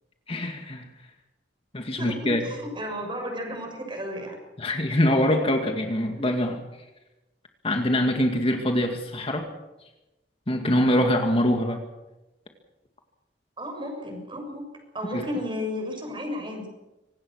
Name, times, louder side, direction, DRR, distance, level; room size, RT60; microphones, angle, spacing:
voice 1, 0.3-0.9 1.7-2.4 4.6-6.6 7.6-9.5 10.5-11.8 15.1-15.2, left 1 dB, 35° left, 4 dB, 2.1 m, -24 dB
voice 2, 2.0-4.3 6.2-6.3 13.6-14.6 14.9-16.7, left 1 dB, 30° right, 3 dB, 6.7 m, -33 dB
25.0 x 19.0 x 6.4 m, 1.0 s
head